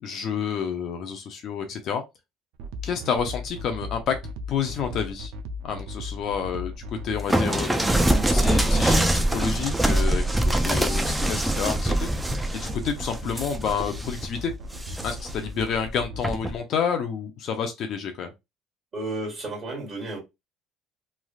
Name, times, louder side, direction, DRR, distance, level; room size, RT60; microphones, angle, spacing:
voice 1, 0.0-2.0 2.8-4.2 4.5-5.3 5.6-6.7 7.0-7.7 8.3-10.2 10.6-12.1 12.5-14.5 15.0-18.3, left 7 dB, 45° left, 0.5 m, -29 dB
sound 1, 2.5-16.3, right 1 dB, 80° right, 0.4 m, -37 dB
sound 2, 7.3-14.3 14.7-15.4 16.2-16.6, right 1 dB, 5° right, 0.4 m, -23 dB
voice 2, 18.9-20.2, right 2 dB, 25° right, 1.6 m, -32 dB
3.1 x 2.4 x 2.4 m
cardioid pair, 155°, 0 cm